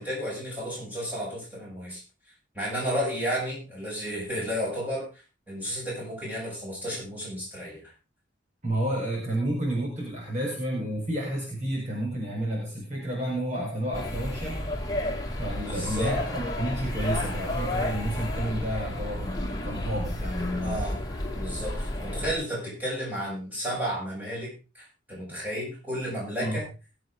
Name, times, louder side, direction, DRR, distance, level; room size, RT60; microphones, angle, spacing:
voice 1, 0.0-2.0 2.5-5.1 5.5-7.9 15.6-16.1 20.6-21.0 21.3-26.6, equal, 10° right, -6 dB, 7.7 m, -32 dB
voice 2, 8.6-14.6 15.4-20.8 26.4-26.6, right 1 dB, 40° right, -3 dB, 4.6 m, -30 dB
sound 1, 13.9-22.3, left 1 dB, 20° left, 2.1 m, -32 dB
20.5 x 7.9 x 3.8 m, 0.31 s
head